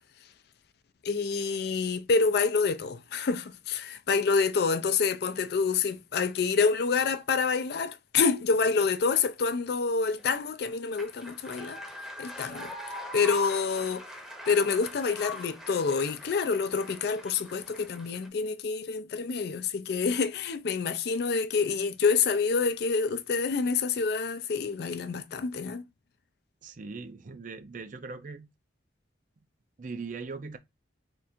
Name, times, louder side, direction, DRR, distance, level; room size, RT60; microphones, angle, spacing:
voice 1, 1.0-11.8 12.2-12.7 13.1-14.0 14.5-25.8, left 5 dB, 55° left, 0.4 m, -27 dB
sound 1, 10.2-18.3, left 1 dB, ahead, 0.8 m, -43 dB
voice 2, 26.6-28.5 29.8-30.6, right 4 dB, 45° right, 0.5 m, -40 dB
3.5 x 2.4 x 4.3 m
head